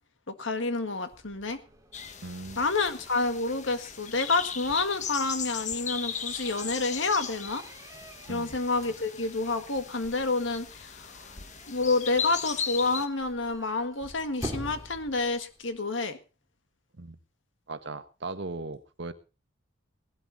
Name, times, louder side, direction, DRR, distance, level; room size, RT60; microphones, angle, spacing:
voice 1, 0.3-1.6 2.6-7.6 8.3-11.3 11.7-16.2, left 3 dB, 70° left, 9 dB, 1.9 m, -29 dB
sound 1, 0.7-15.8, right 1 dB, 15° right, 2.2 m, -47 dB
sound 2, 1.9-13.1, left 7 dB, 35° left, 1.3 m, -38 dB
voice 2, 2.2-2.6 8.3-8.5 16.9-17.2 17.7-19.1, right 3 dB, 60° right, 10 dB, 1.3 m, -38 dB
18.0 x 12.5 x 4.1 m, 0.32 s
head